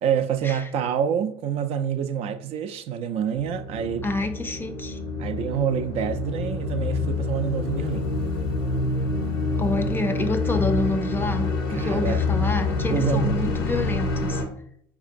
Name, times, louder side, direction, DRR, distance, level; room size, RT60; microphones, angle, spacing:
voice 1, 0.0-4.1 5.2-8.1 11.7-12.2 12.9-13.3, right 8 dB, 55° right, 0.4 m, -27 dB
sound 1, 3.4-14.5, left 3 dB, 80° left, 0.7 m, -27 dB
voice 2, 4.0-5.0 9.6-14.4, left 2 dB, 20° left, 0.4 m, -28 dB
4.3 x 2.8 x 2.5 m
hypercardioid pair, 80°, 12 cm